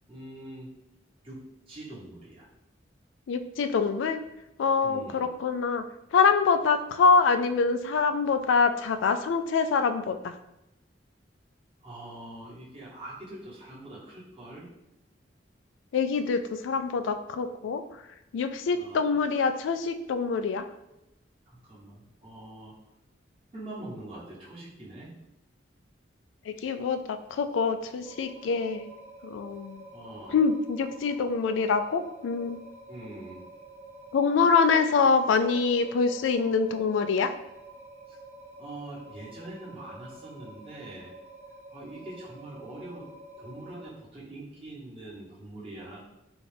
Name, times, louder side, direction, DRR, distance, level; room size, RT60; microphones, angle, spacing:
voice 1, 0.0-0.7 1.2-2.5 4.8-5.3 11.8-14.7 18.7-19.2 21.5-22.7 23.5-25.1 29.9-30.4 32.9-33.4 38.1-38.2 38.5-41.1 41.7-43.1 43.4-46.0, right 1 dB, 30° right, -7 dB, 1.2 m, -43 dB
voice 2, 3.3-4.2 4.6-5.8 6.1-10.3 15.9-17.8 18.3-20.6 26.5-28.9 29.2-29.8 30.3-32.6 34.1-37.3, left 5 dB, 80° left, 9 dB, 0.3 m, -25 dB
sound 1, 28.0-43.9, right 1 dB, 10° right, 0.4 m, -48 dB
4.0 x 2.4 x 3.3 m, 0.89 s
head